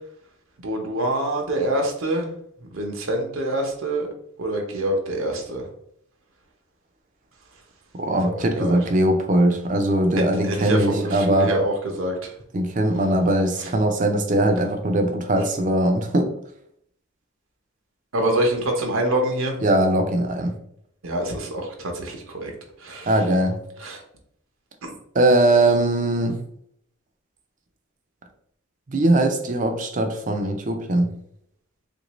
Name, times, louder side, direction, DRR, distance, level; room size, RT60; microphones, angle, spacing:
voice 1, 0.6-2.3 2.7-4.1 4.4-5.6 8.2-8.8 10.2-12.3 18.1-19.6 21.0-22.5 22.8-23.1 23.8-24.0 24.8-24.9, right 1 dB, 75° right, 2 dB, 0.8 m, -25 dB
voice 2, 7.9-11.5 12.5-16.3 19.6-20.6 23.1-23.6 25.1-26.4 28.9-31.1, right 1 dB, 40° right, 6 dB, 0.5 m, -20 dB
3.6 x 2.6 x 3.0 m, 0.70 s
head